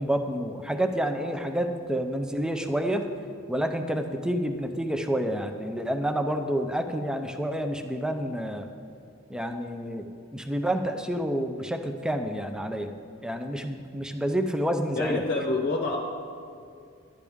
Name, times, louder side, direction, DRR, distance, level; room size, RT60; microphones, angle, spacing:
voice 1, 0.0-3.1 3.5-8.7 9.3-12.9 13.2-15.2, equal, 5° right, 6 dB, 0.5 m, -29 dB
voice 2, 14.9-16.0, left 2 dB, 40° left, 1 dB, 0.8 m, -27 dB
12.0 x 10.0 x 3.5 m, 2.3 s
head